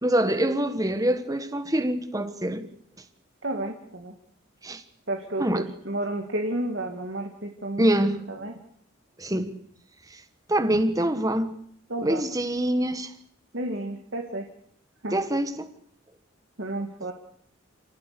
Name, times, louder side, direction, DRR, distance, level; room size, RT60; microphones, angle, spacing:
voice 1, 0.0-2.7 4.6-4.8 5.4-5.7 7.8-8.2 9.2-9.5 10.1-10.2 10.5-11.5 12.0-13.1 15.1-15.7, right 1 dB, 20° right, 1.4 m, -25 dB
voice 2, 3.4-4.1 5.1-7.9 8.3-8.5 11.9-12.2 13.5-14.5 15.0-15.1 16.6-17.1, right 1 dB, 60° right, 2.2 m, -31 dB
28.5 x 17.0 x 6.9 m
head